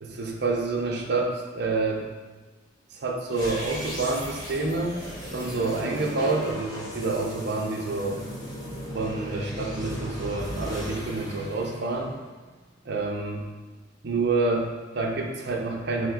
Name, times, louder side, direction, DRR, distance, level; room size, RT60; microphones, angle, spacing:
voice 1, 0.0-2.1 2.9-8.2 8.9-12.1 12.8-13.5 14.0-16.1, right 3 dB, 55° right, 1 dB, 0.6 m, -28 dB
sound 1, 3.3-12.5, equal, 20° left, 1.1 m, -37 dB
3.5 x 3.3 x 3.6 m, 1.3 s
head